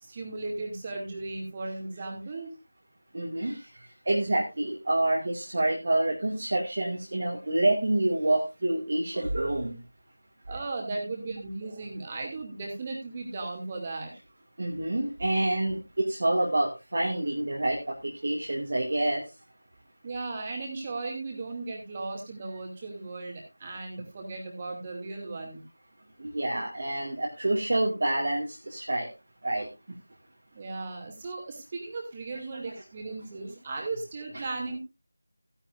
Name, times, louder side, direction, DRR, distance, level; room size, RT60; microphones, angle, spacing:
voice 1, 0.0-2.5 10.5-14.1 20.0-25.6 30.5-34.8, right 3 dB, 20° right, 1 dB, 2.5 m, -36 dB
voice 2, 3.1-3.6 4.1-9.8 14.6-19.2 26.2-29.1 29.4-29.7, right 1 dB, 40° right, -2 dB, 2.2 m, -27 dB
15.5 x 10.5 x 2.6 m, 0.24 s
figure-of-eight pair, 170°, 0 cm